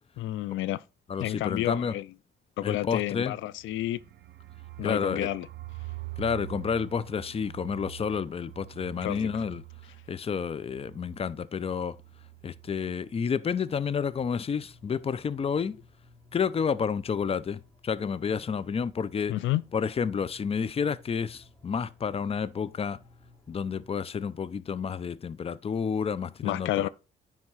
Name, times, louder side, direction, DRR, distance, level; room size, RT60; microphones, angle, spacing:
voice 1, 0.2-0.8 1.2-2.1 2.6-4.0 4.8-5.5 9.0-9.4 19.3-19.6 26.4-26.9, left 15 dB, 80° left, 0.4 m, -30 dB
voice 2, 1.1-1.9 2.6-3.4 4.8-5.3 6.2-9.6 10.1-12.0 12.4-15.8 16.3-19.3 19.7-23.0 23.5-26.9, left 6 dB, 30° left, 0.5 m, -30 dB
sound 1, 3.5-13.2 13.5-13.6 13.9-14.4, right 19 dB, 60° right, 0.6 m, -45 dB
sound 2, 14.0-24.1, left 2 dB, 15° left, 2.8 m, -58 dB
9.8 x 3.6 x 5.6 m
cardioid pair, 90°, 20 cm